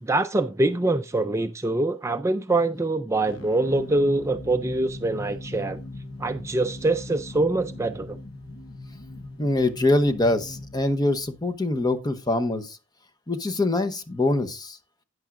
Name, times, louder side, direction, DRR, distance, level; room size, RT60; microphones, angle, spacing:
voice 1, 0.0-5.8 6.2-8.2, right 2 dB, 15° right, 0.4 m, -24 dB
sound 1, 3.3-11.9, left 2 dB, 65° left, 0.9 m, -39 dB
voice 2, 9.4-12.8 13.3-14.8, left 2 dB, 20° left, 0.8 m, -24 dB
12.0 x 9.3 x 2.5 m
head